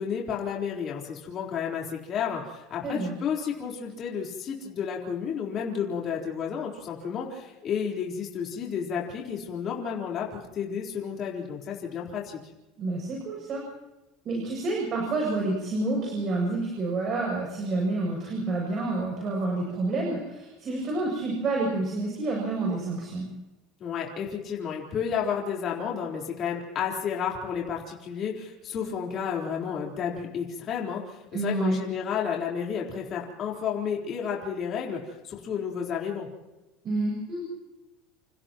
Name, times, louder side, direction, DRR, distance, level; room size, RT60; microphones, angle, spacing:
voice 1, 0.0-12.4 23.8-36.3, left 7 dB, 35° left, -2 dB, 4.1 m, -31 dB
voice 2, 2.8-3.1 12.8-13.6 14.2-23.3 31.3-31.8 36.8-37.4, right 2 dB, 35° right, -1 dB, 7.3 m, -28 dB
29.5 x 29.0 x 3.1 m, 1.0 s
cardioid pair, 155°, 0 cm